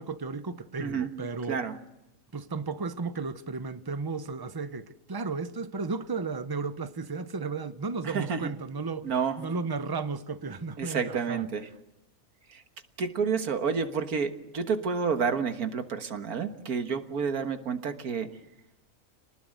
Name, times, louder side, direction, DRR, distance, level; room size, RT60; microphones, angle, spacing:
voice 1, 0.0-1.6 2.3-9.1 9.4-11.4, right 4 dB, 20° right, 0.7 m, -34 dB
voice 2, 0.8-1.1 1.5-1.8 8.0-8.5 9.0-9.4 10.8-11.7 12.5-12.6 13.0-18.3, right 6 dB, 85° right, 1.9 m, -29 dB
27.5 x 19.5 x 7.8 m
omnidirectional pair, 1.5 m